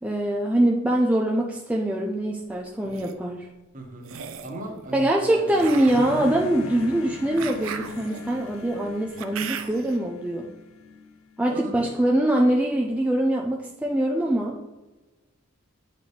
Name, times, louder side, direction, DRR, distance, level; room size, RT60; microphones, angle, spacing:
voice 1, 0.0-3.5 4.9-10.5 11.4-14.6, right 1 dB, 5° right, -2 dB, 0.4 m, -23 dB
sound 1, 2.7-3.1 4.0-4.6 5.5-10.0, right 7 dB, 70° right, 0.5 m, -38 dB
voice 2, 3.7-4.1 4.4-5.7 11.5-11.9, right 1 dB, 40° right, 1 dB, 1.2 m, -37 dB
sound 2, 5.9-11.5, left 3 dB, 85° left, 0.5 m, -40 dB
8.3 x 4.1 x 3.3 m, 1.1 s
head